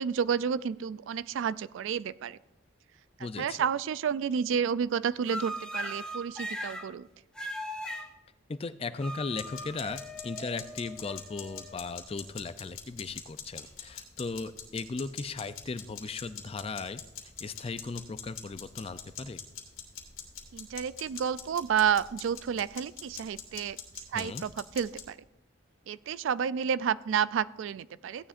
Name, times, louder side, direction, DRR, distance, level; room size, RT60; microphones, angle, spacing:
voice 1, 0.0-2.4 3.4-7.1 20.5-25.2 25.9-28.3, right 7 dB, 70° right, 18 dB, 0.3 m, -30 dB
voice 2, 3.2-3.7 8.5-17.0 17.4-19.4 24.1-24.4, left 4 dB, 30° left, 13 dB, 0.4 m, -37 dB
sound 1, 5.2-6.9 7.3-8.1 9.0-12.2, equal, 5° left, 0.9 m, -39 dB
sound 2, 9.4-25.1, left 8 dB, 85° left, 1.8 m, -44 dB
16.0 x 9.9 x 2.5 m, 0.91 s
head